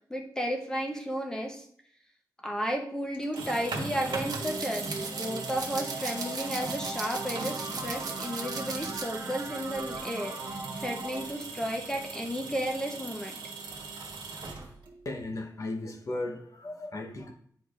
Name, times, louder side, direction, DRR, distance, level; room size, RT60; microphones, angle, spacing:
voice 1, 0.1-1.6 2.4-13.4, equal, 10° left, 2 dB, 0.8 m, -33 dB
sound 1, 3.1-15.1, right 3 dB, 90° right, 1.2 m, -40 dB
sound 2, 4.1-11.2, right 3 dB, 35° right, 0.6 m, -39 dB
sound 3, 4.3-9.4 9.8-10.0, right 4 dB, 55° right, 1.0 m, -39 dB
voice 2, 15.0-17.3, left 2 dB, 45° left, 3 dB, 0.9 m, -36 dB
9.9 x 4.5 x 2.4 m, 0.63 s
wide cardioid pair, 170°, 8 cm